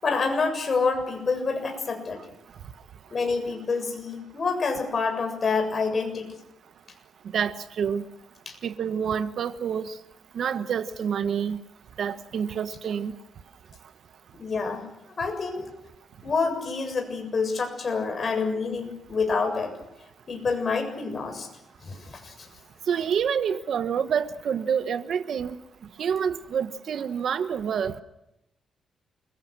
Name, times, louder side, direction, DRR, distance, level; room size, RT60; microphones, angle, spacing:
voice 1, 0.0-2.2 3.1-6.4 8.5-8.6 14.4-14.8 15.2-15.7 16.2-19.7 20.3-21.5 21.8-22.5, left 4 dB, 40° left, 5 dB, 7.3 m, -27 dB
voice 2, 7.3-8.0 8.6-9.9 10.3-11.6 12.0-13.1 22.9-25.6 26.0-28.0, right 7 dB, 65° right, 11 dB, 1.3 m, -27 dB
28.5 x 23.0 x 6.3 m, 0.87 s
cardioid pair, 135°, 0 cm